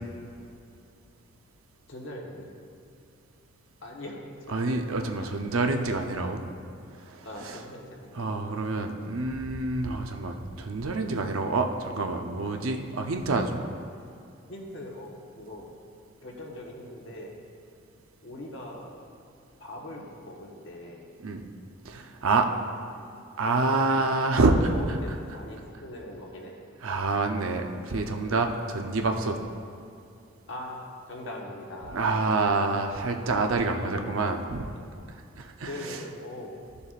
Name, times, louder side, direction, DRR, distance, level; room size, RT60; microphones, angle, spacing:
voice 1, 1.9-2.5 3.8-4.2 4.5-5.3 7.2-8.1 12.7-12.8 14.5-15.7 16.2-17.3 18.2-18.9 19.6-21.2 22.9-23.1 23.4-24.2 24.5-26.6 30.5-32.4 33.7-34.1 34.9-35.0 35.6-36.5, left 1 dB, 60° left, -1 dB, 1.3 m, -41 dB
voice 2, 4.5-6.4 7.0-7.6 8.1-13.7 21.2-21.4 21.8-22.5 23.4-24.5 26.8-29.4 31.9-34.7 35.4-36.0, right 3 dB, 80° right, 4 dB, 0.7 m, -27 dB
14.0 x 6.9 x 2.5 m, 2.5 s
head